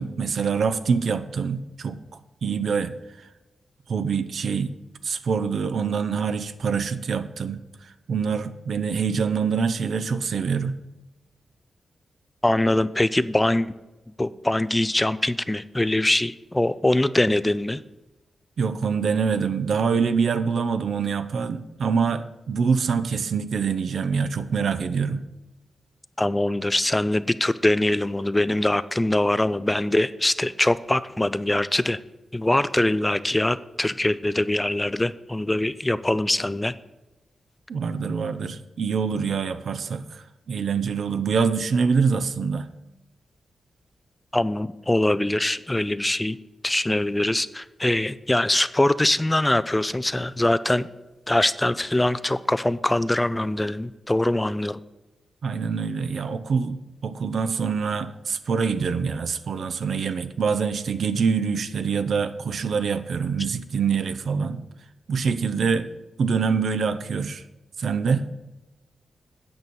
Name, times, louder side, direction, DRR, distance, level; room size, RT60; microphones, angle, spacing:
voice 1, 0.0-2.0 2.4-2.9 3.9-4.7 5.0-7.7 8.1-10.7 18.6-25.2 37.7-42.7 55.4-64.6 65.1-65.9 66.2-67.4 67.8-68.2, right 5 dB, 70° right, 12 dB, 0.6 m, -25 dB
voice 2, 12.4-13.7 14.2-17.8 26.2-32.0 32.3-36.7 44.3-46.4 46.6-50.9 51.3-54.8, left 1 dB, 15° left, 15 dB, 0.3 m, -23 dB
8.9 x 5.3 x 7.9 m, 1.0 s
wide cardioid pair, 105°, 0 cm